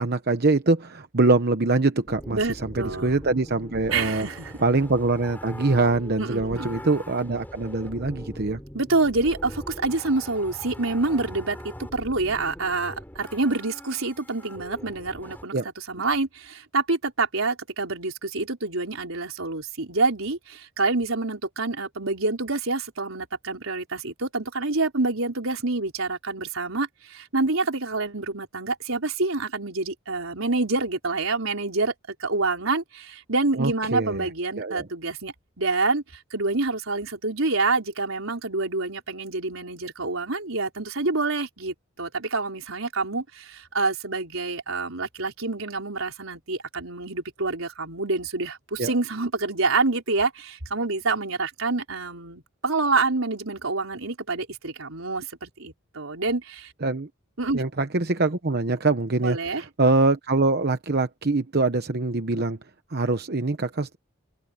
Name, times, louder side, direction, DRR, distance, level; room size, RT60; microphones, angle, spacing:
voice 1, 0.0-4.3 4.6-8.6 15.5-15.7 33.6-34.3 34.6-34.9 48.8-48.9 56.8-57.1 57.5-62.6 62.9-64.0, right 3 dB, 50° right, 1.0 m, -24 dB
sound 1, 2.1-15.4, equal, 10° left, 6.0 m, -41 dB
voice 2, 2.3-3.2 3.9-4.6 6.2-6.7 8.7-31.9 32.2-56.7 57.4-57.6 59.2-59.6, right 3 dB, 85° right, 4.1 m, -27 dB
open air
head